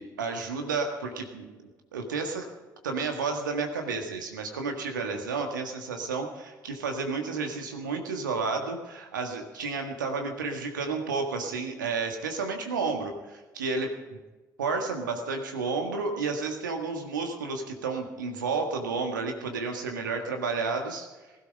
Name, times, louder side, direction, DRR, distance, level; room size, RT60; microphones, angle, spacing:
voice 1, 0.0-1.5 1.9-2.4 2.8-14.2 14.6-21.1, right 4 dB, 85° right, 4 dB, 1.7 m, -31 dB
19.0 x 12.5 x 5.4 m, 1.2 s
hypercardioid pair, 55°, 10 cm